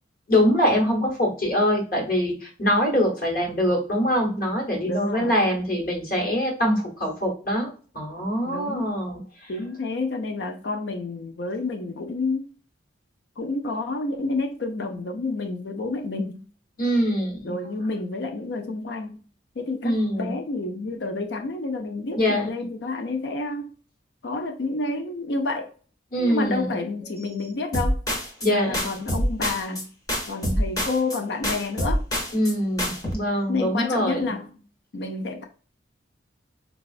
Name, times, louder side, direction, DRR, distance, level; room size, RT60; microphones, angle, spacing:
voice 1, 0.3-9.5 16.8-17.6 19.8-20.3 22.2-22.5 26.1-26.7 28.4-28.9 32.3-34.3, equal, 50° left, 1.1 m, -24 dB
voice 2, 4.9-5.4 8.5-8.9 9.5-12.5 13.4-16.5 17.4-19.2 19.6-23.7 24.2-25.7 26.2-28.0 28.5-29.9 30.3-32.0 33.5-34.6 34.9-35.4, left 3 dB, 65° left, 0.5 m, -29 dB
sound 1, 27.7-28.5 28.7-29.8 30.1-31.2 31.4-32.5 32.8-33.1, equal, 20° left, 0.7 m, -26 dB
4.0 x 2.3 x 2.3 m
head